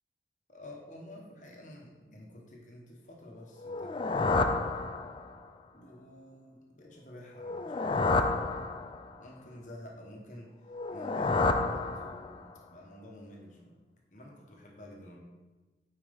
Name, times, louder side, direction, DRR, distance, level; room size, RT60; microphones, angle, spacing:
voice 1, 0.5-4.4 5.7-8.6 9.2-10.5 10.9-13.8 14.1-15.2, left 1 dB, 45° left, -1 dB, 1.2 m, -49 dB
sound 1, 3.6-5.5 7.4-9.2 10.7-12.5, left 3 dB, 25° left, 0.3 m, -30 dB
9.2 x 4.4 x 3.5 m, 1.2 s
head